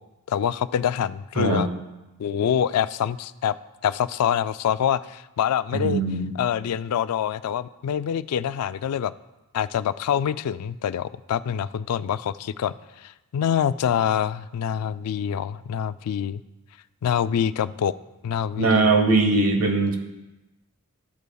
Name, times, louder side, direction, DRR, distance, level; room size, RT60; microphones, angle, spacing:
voice 1, 0.3-1.7 2.2-3.5 3.8-6.0 6.3-9.1 9.5-12.7 13.0-16.4 17.0-17.9 18.2-18.9, left 9 dB, 85° left, 15 dB, 0.3 m, -25 dB
voice 2, 1.4-1.7 5.7-6.3 18.6-19.9, right 3 dB, 80° right, 5 dB, 1.1 m, -20 dB
12.5 x 8.1 x 2.3 m, 1.0 s
head